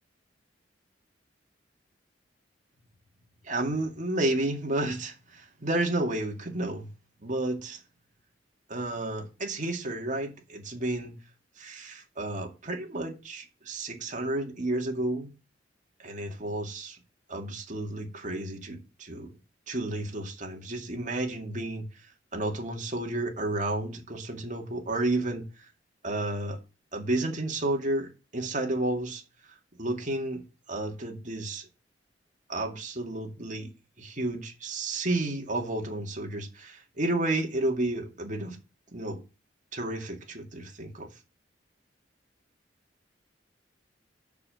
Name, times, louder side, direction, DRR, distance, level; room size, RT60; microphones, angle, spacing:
voice 1, 3.4-6.9 7.2-7.8 8.7-11.1 11.6-15.3 16.0-17.0 17.3-19.3 19.7-21.9 22.3-25.4 26.0-26.6 26.9-29.2 29.5-30.4 30.7-31.7 32.5-33.7 34.0-38.6 38.9-39.2 39.7-41.1, right 2 dB, 45° right, 2.3 m, -31 dB
6.8 x 6.8 x 7.7 m
head